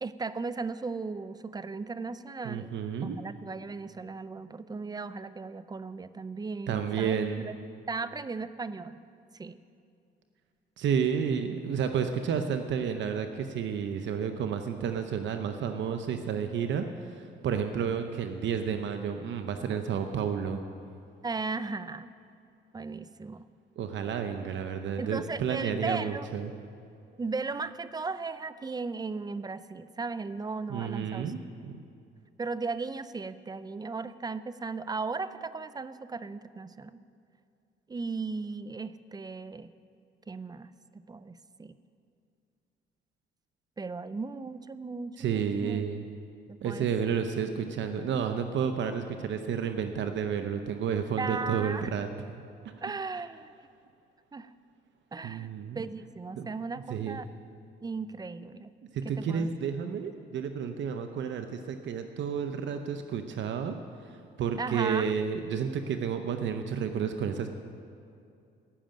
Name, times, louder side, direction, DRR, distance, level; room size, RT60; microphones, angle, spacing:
voice 1, 0.0-2.7 3.0-7.6 7.9-9.0 9.4-9.6 17.0-17.2 21.2-22.1 22.7-23.5 25.0-26.3 27.2-31.3 32.4-37.0 37.9-39.7 40.3-41.8 43.8-45.8 46.5-47.2 51.2-51.9 52.8-53.5 54.3-54.5 55.1-55.5 55.7-57.3 57.8-58.7 59.0-59.5 64.6-65.1, right 4 dB, 20° right, 14 dB, 0.5 m, -36 dB
voice 2, 2.4-3.2 6.7-7.5 10.8-20.6 23.8-26.5 30.7-31.8 45.2-46.1 46.6-52.4 55.2-55.9 56.3-56.5 56.9-57.2 58.9-63.7 64.0-67.5, right 7 dB, 70° right, 7 dB, 0.8 m, -31 dB
14.5 x 6.4 x 9.0 m, 2.5 s
cardioid pair, 90°, 20 cm